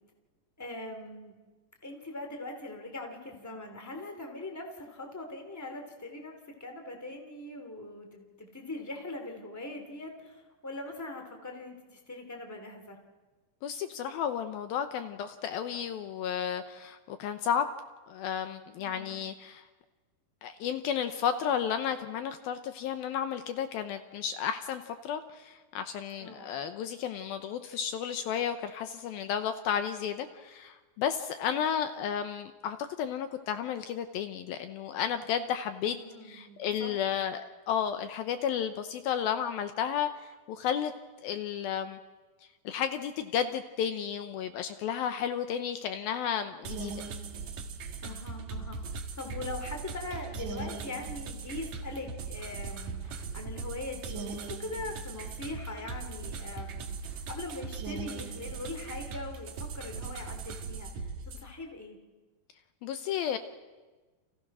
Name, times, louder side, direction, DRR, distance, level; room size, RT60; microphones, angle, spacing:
voice 1, 0.6-1.4 1.8-13.0 18.8-19.2 26.2-26.6 35.8-36.9 48.0-62.0, left 2 dB, 5° left, 4 dB, 2.6 m, -42 dB
voice 2, 13.6-17.7 18.1-19.7 20.4-36.0 36.2-40.9 41.2-42.0 42.6-46.9 62.8-63.4, left 8 dB, 75° left, 9 dB, 2.6 m, -32 dB
sound 1, 46.6-61.4, right 4 dB, 55° right, 2.7 m, -39 dB
30.0 x 28.5 x 6.2 m, 1.3 s
omnidirectional pair, 4.6 m